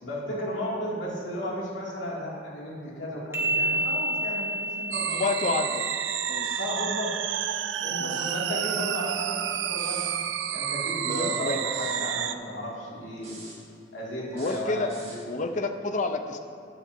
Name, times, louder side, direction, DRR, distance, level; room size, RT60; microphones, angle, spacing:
voice 1, 0.0-5.5 6.5-7.2 7.8-10.1 10.5-13.4 13.9-15.2, equal, 85° left, -5 dB, 2.4 m, -34 dB
sound 1, 3.3-6.9, right 1 dB, 15° right, 1.2 m, -30 dB
sound 2, 4.9-12.3, right 9 dB, 70° right, 0.4 m, -30 dB
voice 2, 5.1-5.9 6.3-6.5 8.0-8.2 11.0-11.6 14.3-14.9 15.3-16.4, left 3 dB, 40° left, 7 dB, 0.6 m, -29 dB
sound 3, 6.4-6.8 8.0-8.4 9.8-10.1 11.1-12.0 13.2-13.6 14.3-15.2, right 3 dB, 35° right, 1.9 m, -47 dB
13.5 x 9.1 x 2.7 m, 2.7 s
head